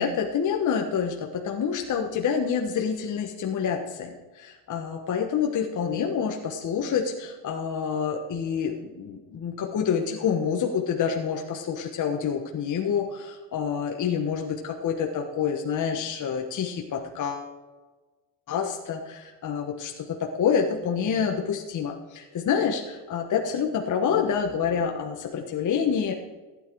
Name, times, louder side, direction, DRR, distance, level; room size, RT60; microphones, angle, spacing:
voice 1, 0.0-17.5 18.5-26.1, left 7 dB, 40° left, 2 dB, 1.3 m, -27 dB
14.5 x 9.6 x 4.7 m, 1.3 s
cardioid pair, 125°, 49 cm